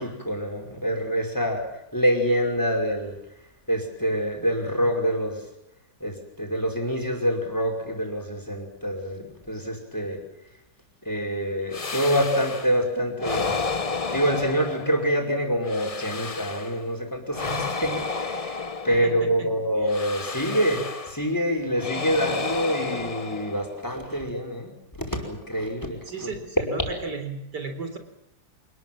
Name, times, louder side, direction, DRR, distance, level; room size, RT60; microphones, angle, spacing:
voice 1, 0.0-1.7 1.9-3.2 3.7-5.4 6.0-10.2 11.0-13.6 14.1-18.6 18.8-24.7 25.0-26.3, equal, 10° left, 4 dB, 5.3 m, -26 dB
sound 1, 11.7-12.8 13.2-15.2 15.6-16.9 17.3-19.3 19.9-21.3 21.8-23.9, left 4 dB, 25° left, 0.9 m, -31 dB
voice 2, 18.9-19.5 19.8-19.9 26.1-28.0, right 3 dB, 85° right, 7 dB, 4.4 m, -35 dB
26.5 x 20.5 x 7.6 m, 0.84 s
omnidirectional pair, 1.8 m